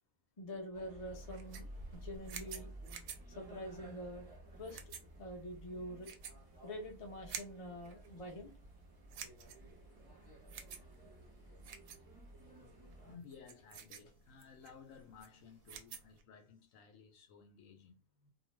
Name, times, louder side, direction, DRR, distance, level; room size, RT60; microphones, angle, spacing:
voice 1, 0.4-2.7 3.3-4.3 4.6-4.8 5.2-6.1 6.6-8.6 12.6-12.8, equal, 50° left, 0.4 m, -46 dB
sound 1, 0.7-13.2, right 1 dB, 20° right, 0.7 m, -54 dB
sound 2, 1.1-16.2, right 6 dB, 70° right, 0.9 m, -52 dB
voice 2, 9.8-10.1 13.0-18.3, left 6 dB, 70° left, 0.9 m, -57 dB
2.5 x 2.2 x 3.0 m
omnidirectional pair, 1.6 m